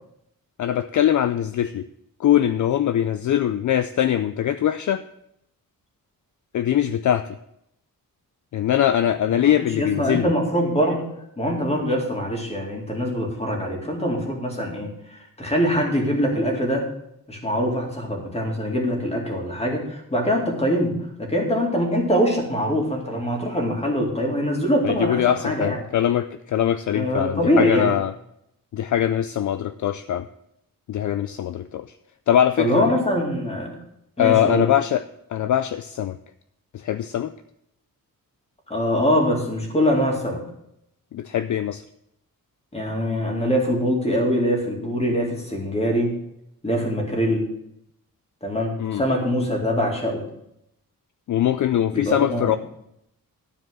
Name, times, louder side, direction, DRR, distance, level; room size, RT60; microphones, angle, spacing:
voice 1, 0.6-1.9 2.2-5.0 6.5-7.4 8.5-10.3 24.8-28.1 28.7-30.3 30.9-31.9 32.3-32.9 34.2-35.0 35.3-36.2 36.7-37.3 41.1-41.8 48.8-49.0 51.3-52.6, left 10 dB, 60° left, 11 dB, 0.4 m, -22 dB
voice 2, 9.4-11.1 11.4-16.8 17.3-25.8 26.9-27.9 32.6-33.8 34.2-34.6 38.7-40.4 42.7-46.1 46.6-47.5 48.4-50.2 51.9-52.5, equal, 15° left, 0 dB, 2.4 m, -23 dB
12.0 x 5.0 x 7.7 m, 0.78 s
wide cardioid pair, 170°, 35 cm